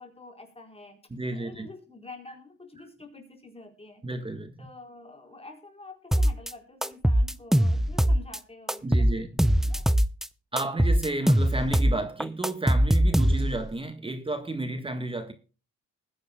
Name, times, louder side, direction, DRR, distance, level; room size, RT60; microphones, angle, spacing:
voice 1, 0.0-1.0 1.3-4.0 4.6-9.9, left 3 dB, 20° left, 4.4 m, -47 dB
voice 2, 1.1-1.7 4.0-4.7 8.8-9.3 10.5-15.3, right 2 dB, 15° right, 1.4 m, -32 dB
sound 1, 6.1-6.5 6.8-8.4 8.7-10.3 10.6-13.7, equal, ahead, 0.5 m, -22 dB
20.5 x 9.9 x 2.3 m
cardioid pair, 90°, 30 cm